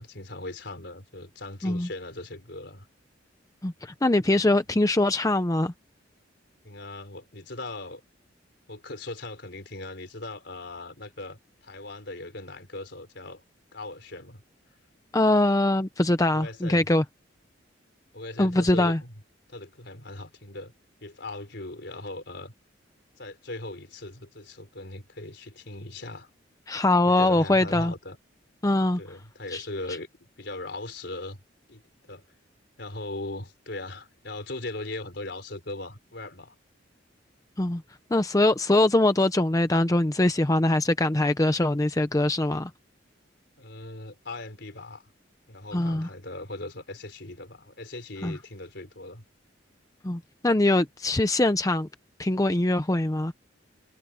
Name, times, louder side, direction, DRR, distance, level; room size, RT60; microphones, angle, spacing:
voice 1, 0.0-2.9 6.6-8.0 8.7-13.4 13.7-14.4 16.3-16.9 18.1-19.1 19.5-20.7 21.0-22.5 23.2-26.3 27.1-28.2 29.0-30.1 30.4-31.4 31.7-32.2 32.8-36.5 43.6-45.0 45.5-49.2, left 2 dB, 60° left, 4.5 m, -39 dB
voice 2, 3.6-5.7 15.1-17.0 18.4-19.0 26.7-27.9 28.6-29.0 29.5-29.6 37.6-37.8 38.1-42.7 45.7-46.1 48.2-48.4 50.0-51.9 52.2-53.3, left 1 dB, 20° left, 0.7 m, -23 dB
head